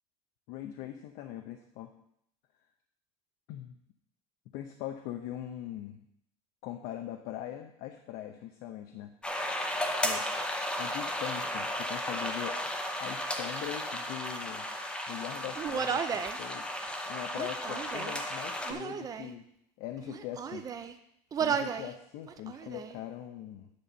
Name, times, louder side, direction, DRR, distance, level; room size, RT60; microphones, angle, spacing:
voice 1, 0.5-1.9 3.5-3.8 4.5-6.0 6.6-9.4 10.0-10.3 10.8-12.6 13.0-14.7 15.1-19.5 19.8-20.7 21.4-23.7, left 12 dB, 80° left, 5 dB, 0.7 m, -41 dB
sound 1, 9.2-18.7, left 1 dB, 5° left, 0.8 m, -34 dB
Human voice, 15.6-16.4 17.3-18.2 18.6-19.3 20.0-20.9 21.3-21.9 22.3-22.9, right 7 dB, 25° right, 0.5 m, -34 dB
9.7 x 4.3 x 6.7 m, 0.72 s
cardioid pair, 165°, 15 cm